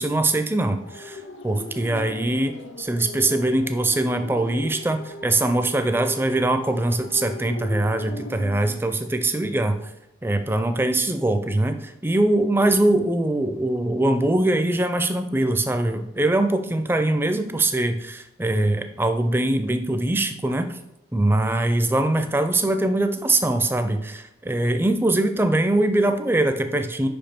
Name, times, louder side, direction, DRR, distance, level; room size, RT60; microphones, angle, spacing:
voice 1, 0.0-9.8 10.2-20.8 21.1-27.1, right 2 dB, 10° right, 8 dB, 0.4 m, -22 dB
sound 1, 0.8-8.8, left 2 dB, 85° left, 0.6 m, -38 dB
5.4 x 5.2 x 4.4 m, 0.84 s
head